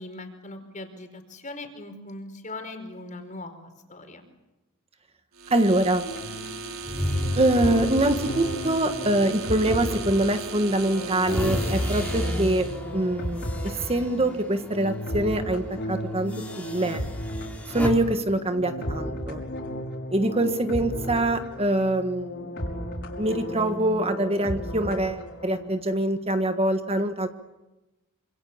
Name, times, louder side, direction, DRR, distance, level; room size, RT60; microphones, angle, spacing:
voice 1, 0.0-4.3, left 2 dB, 35° left, 7 dB, 4.6 m, -40 dB
sound 1, 5.3-12.8, right 3 dB, 70° right, 4.8 m, -37 dB
voice 2, 5.5-6.0 7.4-12.7 12.9-17.0 17.7-19.4 20.1-22.5 23.2-27.3, right 1 dB, 30° right, 7 dB, 1.5 m, -24 dB
sound 2, 6.0-25.7, equal, 55° left, 5.7 m, -35 dB
sound 3, 6.8-10.2 10.6-14.9 15.3-15.5 16.3-17.9, equal, 5° left, 4.5 m, -33 dB
27.5 x 26.5 x 7.3 m, 1.0 s
head